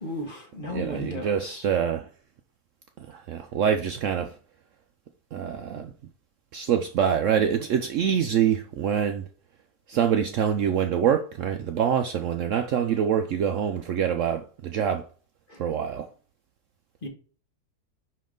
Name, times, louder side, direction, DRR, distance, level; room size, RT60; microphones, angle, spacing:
voice 1, 0.0-1.6 15.5-15.6 17.0-17.1, left 1 dB, 35° left, 1.3 m, -35 dB
voice 2, 0.7-2.1 3.0-4.4 5.3-5.9 6.5-9.2 9.9-15.1 15.6-16.1, right 8 dB, 65° right, 0.8 m, -25 dB
5.4 x 5.2 x 3.7 m
omnidirectional pair, 1.7 m